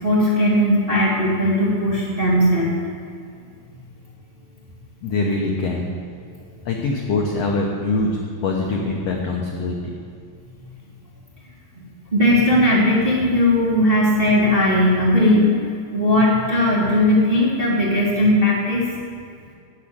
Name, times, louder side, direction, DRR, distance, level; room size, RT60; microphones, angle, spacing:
voice 1, 0.0-2.7 12.1-15.5 15.9-18.9, left 1 dB, 20° right, -8 dB, 1.8 m, -18 dB
voice 2, 5.0-5.9 6.6-10.0, left 3 dB, 70° left, 0 dB, 1.5 m, -23 dB
10.5 x 6.2 x 8.7 m, 2.3 s
omnidirectional pair, 4.0 m